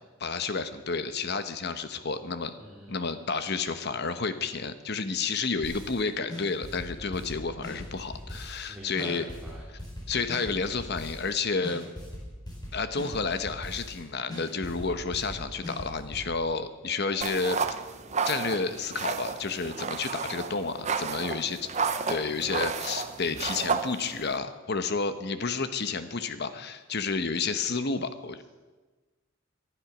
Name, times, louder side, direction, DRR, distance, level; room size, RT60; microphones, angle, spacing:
voice 1, 0.2-2.5 2.9-9.2 9.7-9.8 10.1-11.9 12.7-17.6 18.2-21.7 22.1-28.4, left 4 dB, 50° left, 10 dB, 1.0 m, -31 dB
voice 2, 2.6-3.0 8.7-9.6, right 1 dB, 5° right, -7 dB, 3.2 m, -44 dB
sound 1, 5.6-6.0 6.3-8.7 9.0-11.3 11.6-14.0 14.3-16.3, left 1 dB, 20° left, 4.4 m, -40 dB
sound 2, 17.2-24.4, right 5 dB, 30° right, 0.7 m, -32 dB
19.5 x 11.5 x 6.1 m, 1.3 s
head